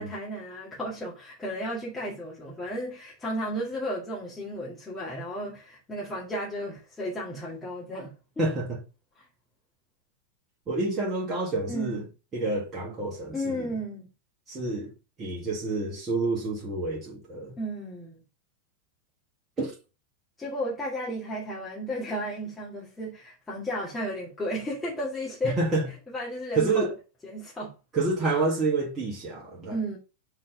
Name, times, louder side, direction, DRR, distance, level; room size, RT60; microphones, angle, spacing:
voice 1, 0.0-8.5 9.2-9.3 11.7-12.0 13.3-14.1 17.6-18.2 20.4-25.6 26.1-26.9 27.2-27.7 29.7-30.0, equal, 10° left, 2.0 m, -33 dB
voice 2, 8.4-8.8 10.7-12.0 12.3-13.7 14.5-14.9 15.2-17.6 19.6-19.7 25.4-25.9 26.5-26.9 27.9-29.8, right 3 dB, 20° right, 1.8 m, -28 dB
6.3 x 3.9 x 3.9 m
figure-of-eight pair, 90°, 0 cm